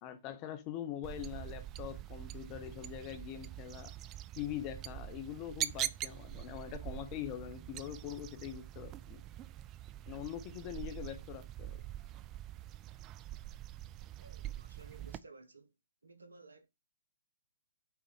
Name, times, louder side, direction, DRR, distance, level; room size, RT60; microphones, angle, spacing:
voice 1, 0.0-3.9 4.4-9.2 10.1-11.8, left 11 dB, 30° left, 0.8 m, -43 dB
sound 1, 1.0-15.2, right 13 dB, 25° right, 0.3 m, -44 dB
voice 2, 14.2-15.7 16.0-16.7, right 3 dB, 70° right, 1.0 m, -56 dB
5.8 x 4.1 x 4.4 m
figure-of-eight pair, 120°, 0 cm